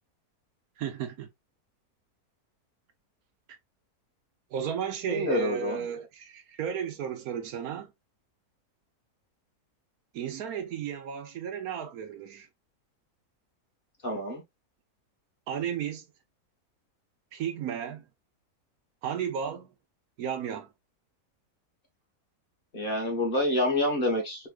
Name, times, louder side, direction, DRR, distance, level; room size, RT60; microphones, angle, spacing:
voice 1, 0.8-1.3 4.5-7.9 10.1-12.5 15.5-16.1 17.3-18.0 19.0-19.7 20.2-20.7, right 8 dB, 70° right, 1.2 m, -34 dB
voice 2, 5.1-5.8 14.0-14.4 22.7-24.5, left 1 dB, 35° left, 1.6 m, -27 dB
4.6 x 3.5 x 2.4 m
omnidirectional pair, 1.7 m